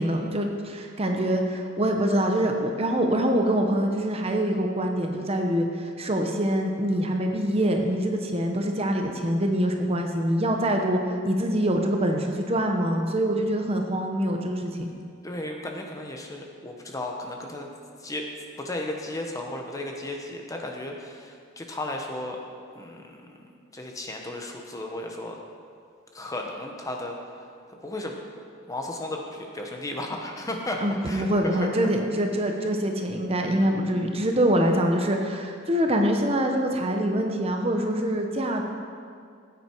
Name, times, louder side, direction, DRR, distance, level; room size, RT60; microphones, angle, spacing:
voice 1, 0.0-11.0 11.2-14.9 30.8-38.6, right 1 dB, 30° right, 3 dB, 0.9 m, -25 dB
voice 2, 15.2-17.7 18.0-18.3 18.6-22.4 22.7-25.4 26.1-27.1 27.7-28.2 28.7-31.8, left 1 dB, 15° left, 1 dB, 1.0 m, -34 dB
15.0 x 8.9 x 4.5 m, 2.3 s
head